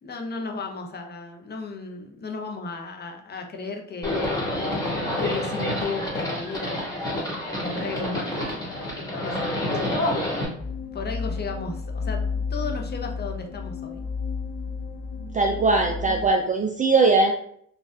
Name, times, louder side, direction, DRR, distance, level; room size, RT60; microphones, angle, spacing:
voice 1, 0.0-4.3 5.2-7.1 7.6-9.5 10.2-10.5 10.9-14.0, left 3 dB, 25° left, 3 dB, 0.7 m, -35 dB
Livestock farm animals working animals, 4.0-10.4, left 1 dB, 10° left, 1.5 m, -28 dB
sound 1, 10.6-16.3, left 5 dB, 85° left, 1.2 m, -32 dB
voice 2, 15.3-17.3, right 3 dB, 20° right, 3 dB, 0.3 m, -20 dB
4.0 x 2.4 x 2.4 m, 0.67 s
hypercardioid pair, 70°, 37 cm